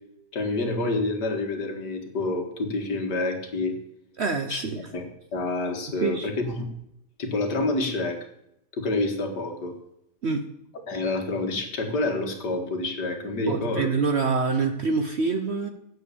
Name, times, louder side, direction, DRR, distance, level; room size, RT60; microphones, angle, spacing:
voice 1, 0.3-3.8 4.5-4.6 4.9-6.7 7.2-8.2 8.7-9.7 10.9-13.9, left 2 dB, 70° left, 4 dB, 2.3 m, -28 dB
voice 2, 4.2-4.8 6.0-6.3 10.2-10.4 13.5-15.7, right 4 dB, 50° right, 7 dB, 0.8 m, -25 dB
9.8 x 7.9 x 6.8 m, 0.79 s
omnidirectional pair, 1.9 m